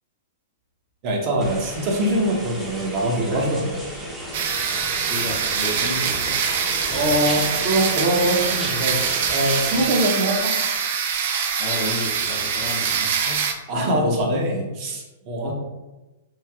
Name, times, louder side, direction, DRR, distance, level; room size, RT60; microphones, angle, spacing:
voice 1, 1.0-3.8 6.9-10.5 13.7-15.5, right 1 dB, 45° right, 0 dB, 0.7 m, -23 dB
sound 1, 1.4-9.9, equal, 10° right, 0.6 m, -34 dB
sound 2, 4.3-13.5, right 6 dB, 60° right, 0.3 m, -24 dB
voice 2, 5.1-6.5 11.6-13.5 15.4-15.5, left 1 dB, 40° left, 0 dB, 0.6 m, -32 dB
3.1 x 2.5 x 2.3 m, 1.1 s
hypercardioid pair, 120°, 0 cm